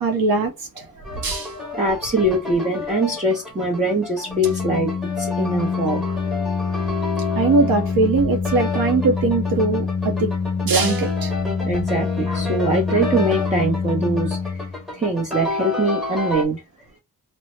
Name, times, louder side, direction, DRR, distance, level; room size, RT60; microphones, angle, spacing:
voice 1, 0.0-0.7 1.2-1.5 7.3-10.3 10.6-11.3, right 3 dB, 70° right, 0.7 m, -20 dB
voice 2, 0.8-4.9 5.2-6.0 7.3-7.5 11.6-14.6 14.9-16.6, right 1 dB, 20° right, 0.8 m, -23 dB
sound 1, 1.0-16.4, left 3 dB, ahead, 1.1 m, -31 dB
Organ, 4.3-15.1, left 5 dB, 30° left, 0.5 m, -25 dB
2.7 x 2.1 x 3.1 m
cardioid pair, 75°, 36 cm